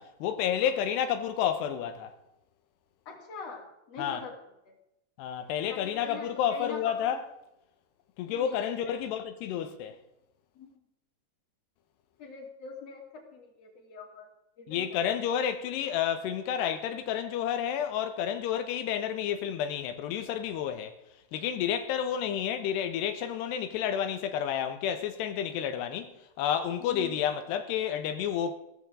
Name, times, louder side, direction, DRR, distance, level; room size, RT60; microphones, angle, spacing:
voice 1, 0.0-2.1 4.0-4.2 5.2-7.2 8.2-10.0 14.7-20.9 21.3-28.5, left 9 dB, 90° left, 3.2 m, -30 dB
voice 2, 3.1-4.3 4.7-4.8 5.7-7.2 8.3-8.7 10.6-10.7 12.2-14.3 14.6-15.0 26.9-27.1, left 4 dB, 40° left, 3.8 m, -43 dB
16.5 x 14.0 x 3.8 m
omnidirectional pair, 4.7 m